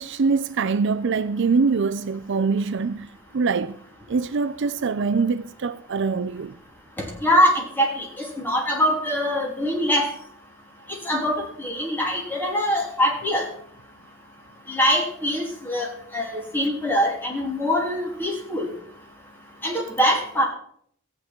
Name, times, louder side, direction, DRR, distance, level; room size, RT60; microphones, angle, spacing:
voice 1, 0.0-3.1 3.3-3.8 4.1-6.5, right 4 dB, 60° right, 0.5 m, -23 dB
voice 2, 7.2-10.1 11.0-13.5 14.7-15.9 16.1-18.7 19.6-20.4, equal, 10° left, 3.1 m, -23 dB
14.5 x 8.9 x 4.5 m
head